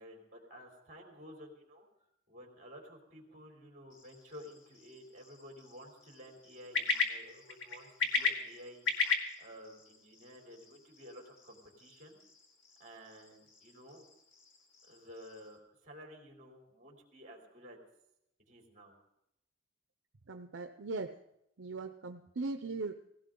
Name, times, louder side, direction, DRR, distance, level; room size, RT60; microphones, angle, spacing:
voice 1, 0.0-12.2 12.8-14.1 14.8-17.8 18.5-18.9, equal, 40° right, 1 dB, 3.6 m, -53 dB
sound 1, 3.9-15.6, left 4 dB, 85° left, 2.1 m, -39 dB
voice 2, 20.3-21.1 21.6-22.9, right 3 dB, 75° right, 7 dB, 0.7 m, -39 dB
18.0 x 16.5 x 3.8 m, 0.80 s
head